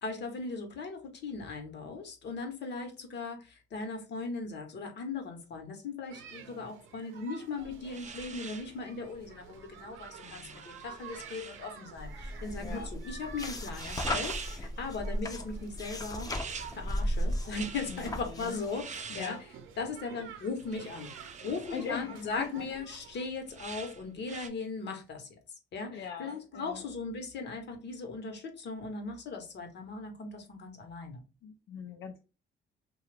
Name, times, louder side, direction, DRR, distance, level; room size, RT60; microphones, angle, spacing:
voice 1, 0.0-16.3 16.8-19.4 19.8-21.1 21.4-25.4 25.7-31.2, left 4 dB, 60° left, 5 dB, 0.9 m, -38 dB
sound 1, 6.1-23.3, right 7 dB, 90° right, 0.6 m, -51 dB
sound 2, 7.6-24.5, right 6 dB, 35° right, 0.5 m, -46 dB
voice 2, 10.2-10.6 12.6-12.9 17.9-18.6 19.1-19.4 21.7-22.7 25.9-26.9 31.4-32.2, left 6 dB, 75° left, 3 dB, 0.5 m, -41 dB
sound 3, 12.0-18.8, equal, 20° left, 0.5 m, -36 dB
2.8 x 2.3 x 3.2 m, 0.31 s
cardioid pair, 90°, 20 cm